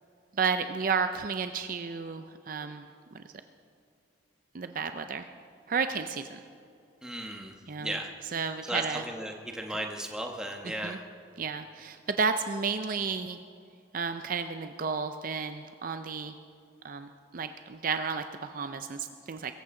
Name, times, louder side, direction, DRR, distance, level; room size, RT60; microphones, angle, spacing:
voice 1, 0.4-2.9 3.1-3.2 4.5-5.3 5.7-6.4 7.7-8.0 8.3-9.0 9.7-9.8 10.6-11.0 11.4-13.4 13.9-16.3 16.8-19.5, right 5 dB, 45° right, 8 dB, 0.5 m, -32 dB
voice 2, 7.0-8.1 8.7-11.0, right 1 dB, 5° right, 1 dB, 1.2 m, -35 dB
23.0 x 14.5 x 3.8 m, 2.5 s
head